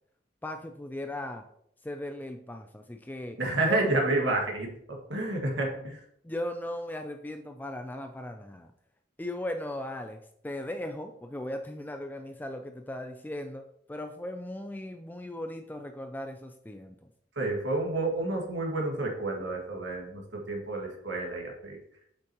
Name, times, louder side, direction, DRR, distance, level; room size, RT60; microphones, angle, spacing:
voice 1, 0.4-1.4 1.8-3.9 6.2-8.7 9.2-17.0, left 1 dB, 10° left, 6 dB, 0.4 m, -37 dB
voice 2, 3.4-4.7 5.1-6.0 17.4-20.2 20.5-21.8, right 2 dB, 85° right, 0 dB, 1.9 m, -29 dB
8.4 x 6.1 x 3.0 m, 0.71 s
head